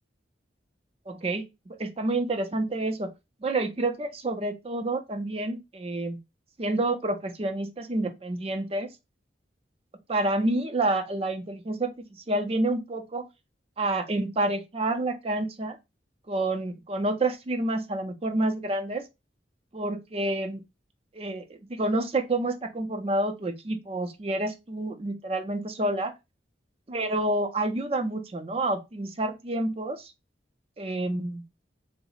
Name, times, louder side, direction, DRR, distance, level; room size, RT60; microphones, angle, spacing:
voice 1, 1.1-3.1 3.4-6.2 6.6-8.9 10.1-13.2 13.8-15.8 16.3-19.0 19.7-20.6 21.1-26.1 26.9-30.1 30.8-31.4, right 2 dB, 30° right, 0.5 m, -28 dB
3.9 x 2.0 x 3.9 m
head